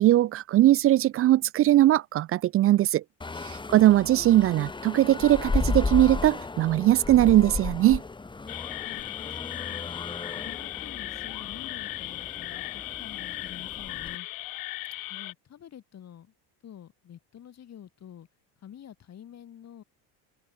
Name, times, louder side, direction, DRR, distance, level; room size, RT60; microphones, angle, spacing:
voice 1, 0.0-3.0 3.4-8.0, right 14 dB, 35° right, 0.4 m, -20 dB
sound 1, 3.2-14.2, left 3 dB, 10° left, 1.5 m, -34 dB
sound 2, 8.5-15.3, left 18 dB, 55° left, 1.2 m, -37 dB
voice 2, 8.8-10.0 10.3-14.3 15.1-16.3 16.6-18.3 18.6-19.8, left 10 dB, 40° left, 7.1 m, -48 dB
open air
cardioid pair, 130°, 40 cm